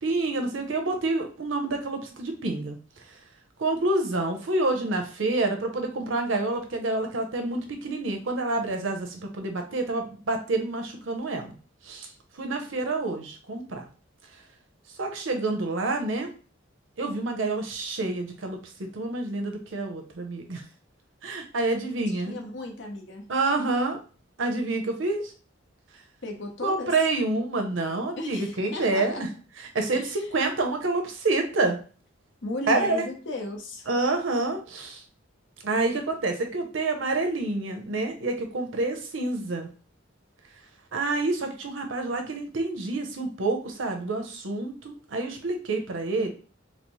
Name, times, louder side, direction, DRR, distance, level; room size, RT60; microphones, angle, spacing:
voice 1, 0.0-2.8 3.6-11.5 11.8-12.1 12.4-13.8 15.0-16.3 17.0-20.6 21.2-22.4 23.3-24.0 24.4-25.3 26.6-29.3 29.6-31.8 32.7-33.1 33.9-35.0 35.6-39.7 40.9-46.3, right 2 dB, 75° right, 4 dB, 0.7 m, -28 dB
voice 2, 22.1-23.2 26.2-26.9 28.2-29.2 29.9-30.1 32.4-33.9, left 2 dB, 65° left, 3 dB, 0.8 m, -35 dB
4.0 x 2.0 x 3.0 m, 0.38 s
head